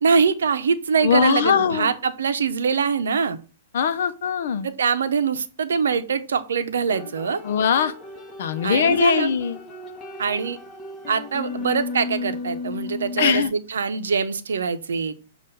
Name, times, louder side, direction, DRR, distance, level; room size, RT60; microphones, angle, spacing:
voice 1, 0.0-3.4 4.6-7.4 8.6-9.3 10.2-10.6 11.1-15.1, right 5 dB, 85° right, 10 dB, 0.7 m, -23 dB
voice 2, 1.0-1.9 3.7-4.7 7.4-7.9 8.4-9.6 13.2-13.5, left 7 dB, 70° left, 12 dB, 0.7 m, -21 dB
sound 1, 6.9-13.5, left 3 dB, 20° left, 1.1 m, -34 dB
7.5 x 2.5 x 5.4 m, 0.36 s
hypercardioid pair, 130°, 0 cm